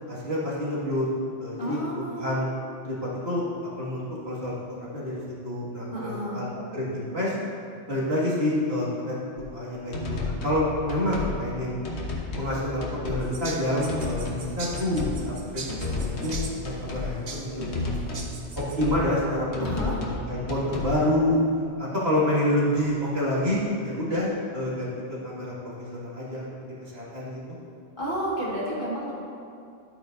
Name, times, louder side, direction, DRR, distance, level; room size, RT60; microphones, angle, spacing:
voice 1, 0.1-1.1 1.4-2.5 2.8-3.4 3.7-7.3 7.9-11.8 12.4-17.9 18.6-19.9 20.3-21.4 21.8-27.4, left 1 dB, 60° right, -8 dB, 2.4 m, -28 dB
voice 2, 1.6-2.3 5.9-6.4 19.6-20.0 28.0-29.1, right 1 dB, 45° left, -7 dB, 2.0 m, -31 dB
sound 1, 9.4-9.5 9.9-10.6 10.9-11.3 11.8-12.5 12.8-13.2 13.8-14.4 14.7-15.2 15.7-17.1 17.6-18.3 18.6-19.0 19.5-20.2 20.5-20.9, left 3 dB, 65° left, 1.4 m, -32 dB
sound 2, 13.2-18.8, right 3 dB, 40° right, 0.8 m, -41 dB
11.0 x 8.7 x 2.6 m, 2.4 s
omnidirectional pair, 1.2 m